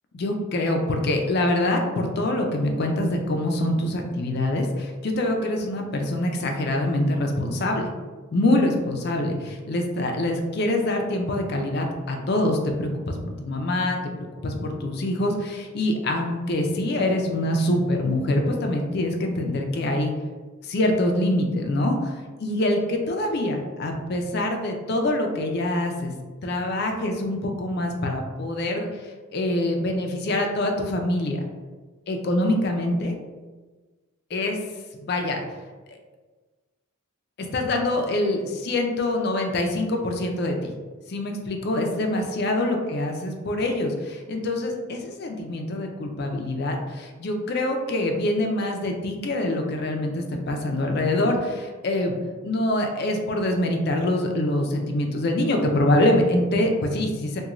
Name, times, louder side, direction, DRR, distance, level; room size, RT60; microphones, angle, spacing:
voice 1, 0.1-7.9 8.3-14.0 14.4-20.1 20.6-26.1 26.4-28.9 29.3-31.4 32.1-33.2 34.3-34.6 35.0-35.4 35.9-36.0 37.5-40.7 41.1-52.1 52.4-57.4, left 1 dB, 50° left, 3 dB, 0.4 m, -25 dB
2.9 x 2.2 x 2.4 m, 1.3 s
head